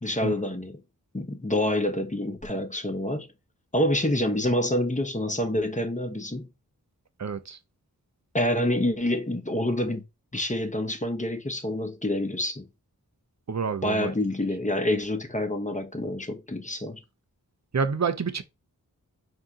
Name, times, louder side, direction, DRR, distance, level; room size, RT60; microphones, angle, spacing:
voice 1, 0.0-0.8 1.1-3.3 3.7-6.5 8.3-10.0 10.3-12.7 13.8-17.0, left 1 dB, 20° left, 0.9 m, -27 dB
voice 2, 7.2-7.6 13.5-14.1 17.7-18.4, right 5 dB, 45° right, 0.7 m, -28 dB
4.3 x 2.8 x 3.7 m
cardioid pair, 45°, 37 cm